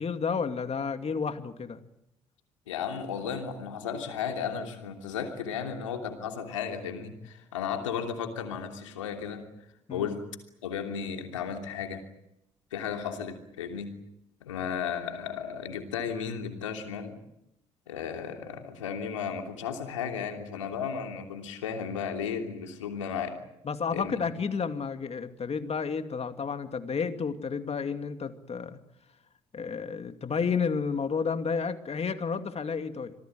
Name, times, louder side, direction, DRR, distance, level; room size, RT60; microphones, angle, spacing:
voice 1, 0.0-1.8 9.9-10.0 23.6-28.8 29.5-33.1, left 5 dB, 40° left, 8 dB, 2.5 m, -31 dB
voice 2, 2.7-9.4 9.9-10.2 10.6-12.0 12.7-13.9 14.4-17.2 17.9-23.4 23.9-24.2, left 7 dB, 90° left, 4 dB, 3.0 m, -34 dB
26.5 x 19.5 x 9.4 m, 0.82 s
hypercardioid pair, 50°, 16 cm